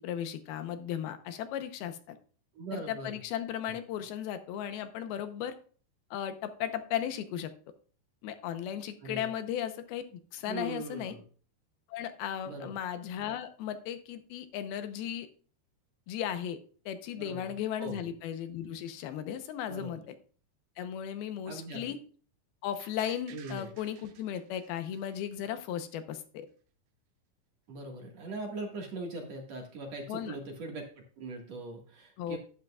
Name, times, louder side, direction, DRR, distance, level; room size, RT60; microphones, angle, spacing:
voice 1, 0.0-2.2 2.7-5.6 6.1-7.5 8.2-11.2 11.9-15.3 16.1-16.6 16.9-20.1 20.8-22.0 22.6-26.5 30.1-30.4 32.2-32.4, left 10 dB, 75° left, 9 dB, 2.5 m, -36 dB
voice 2, 2.5-3.2 9.0-9.3 10.5-11.2 12.5-12.8 17.2-17.5 17.8-18.0 19.7-20.0 21.5-22.0 23.3-23.7 27.7-30.9 31.2-32.4, right 2 dB, 50° right, 2 dB, 2.3 m, -40 dB
sound 1, 22.8-25.7 26.1-26.2, right 10 dB, 90° right, 3.3 m, -55 dB
12.0 x 10.5 x 2.3 m, 0.41 s
omnidirectional pair, 4.8 m